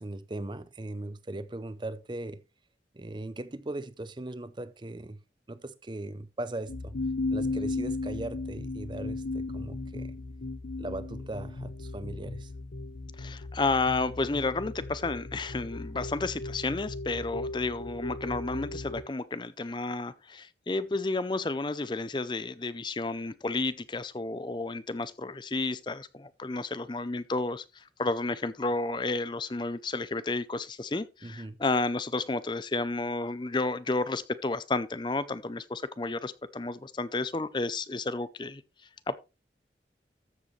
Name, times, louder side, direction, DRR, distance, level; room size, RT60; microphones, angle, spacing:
voice 1, 0.0-2.4 2.9-5.2 5.5-6.9 7.3-10.2 10.8-12.5 31.2-31.6, right 2 dB, 25° right, 0.6 m, -39 dB
sound 1, 6.7-19.0, left 2 dB, 75° left, 0.8 m, -36 dB
voice 2, 13.2-38.6 39.1-39.2, left 3 dB, 25° left, 0.5 m, -31 dB
13.5 x 7.6 x 3.2 m
head